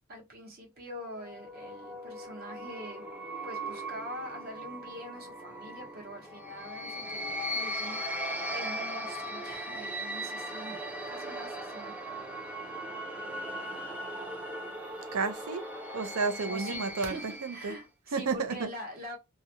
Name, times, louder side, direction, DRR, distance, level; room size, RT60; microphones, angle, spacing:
voice 1, 0.1-3.1 3.4-10.8 11.1-12.3 16.5-19.2, equal, 45° right, 0.9 m, -44 dB
sound 1, 1.0-17.8, equal, 5° right, 0.5 m, -38 dB
voice 2, 15.1-15.6 15.9-17.7 18.1-18.6, right 4 dB, 70° right, 0.5 m, -31 dB
2.4 x 2.1 x 2.8 m
head